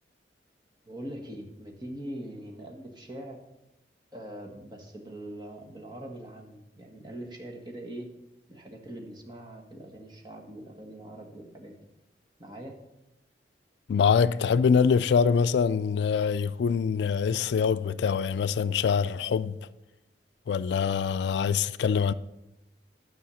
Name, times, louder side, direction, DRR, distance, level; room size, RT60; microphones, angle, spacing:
voice 1, 0.8-3.4 4.1-8.1 8.5-11.7 12.4-12.7, right 1 dB, 25° right, 1.4 m, -42 dB
voice 2, 13.9-19.6 20.5-22.1, left 6 dB, 75° left, 0.3 m, -24 dB
10.5 x 5.6 x 7.0 m
head